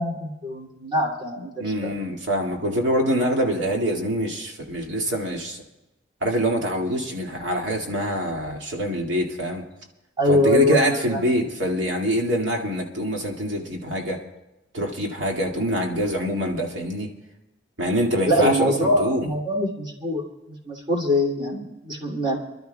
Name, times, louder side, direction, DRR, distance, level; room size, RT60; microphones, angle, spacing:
voice 1, 0.0-1.9 10.2-11.2 18.3-22.4, left 1 dB, 25° right, -2 dB, 2.7 m, -24 dB
voice 2, 1.6-5.6 6.2-9.6 10.3-14.2 14.7-17.1 17.8-19.3, equal, 75° right, 1 dB, 2.1 m, -25 dB
28.0 x 12.0 x 2.3 m, 0.97 s
head